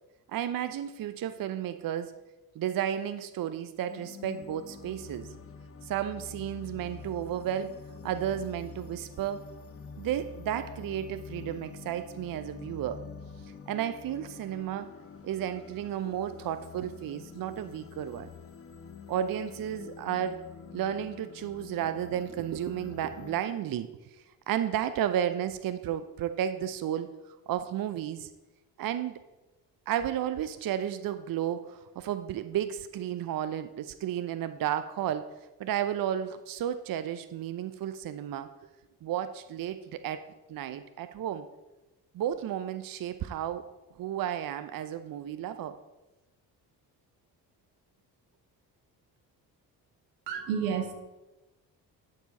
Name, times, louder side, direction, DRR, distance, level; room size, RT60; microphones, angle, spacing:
voice 1, 0.3-2.1 2.5-5.3 5.8-9.4 10.0-13.0 13.4-14.9 15.2-18.3 19.1-20.4 20.7-28.3 28.8-29.2 29.9-35.3 35.6-38.5 39.0-40.2 40.5-41.5 42.1-43.7 44.0-45.8, right 10 dB, 45° right, 11 dB, 0.7 m, -33 dB
sound 1, 3.9-23.4, left 5 dB, 30° left, 0.8 m, -47 dB
voice 2, 50.3-50.9, right 7 dB, 80° right, 5 dB, 1.4 m, -30 dB
11.0 x 6.9 x 4.2 m, 1.0 s
hypercardioid pair, 45°, 49 cm